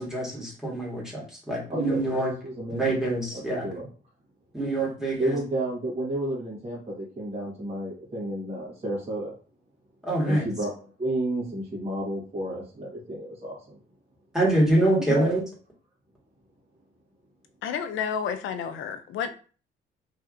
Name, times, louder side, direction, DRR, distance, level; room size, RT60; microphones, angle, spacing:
voice 1, 0.0-2.3 2.7-3.7 4.5-5.4 10.0-10.5 14.3-15.4, right 1 dB, 5° right, -4 dB, 1.5 m, -25 dB
voice 2, 1.7-3.0 3.3-3.9 5.2-9.3 10.2-13.8 15.1-15.3, right 1 dB, 30° right, -4 dB, 1.3 m, -32 dB
voice 3, 17.6-19.3, left 7 dB, 75° left, 9 dB, 0.5 m, -30 dB
3.2 x 2.7 x 2.5 m, 0.38 s
cardioid pair, 90°, 20 cm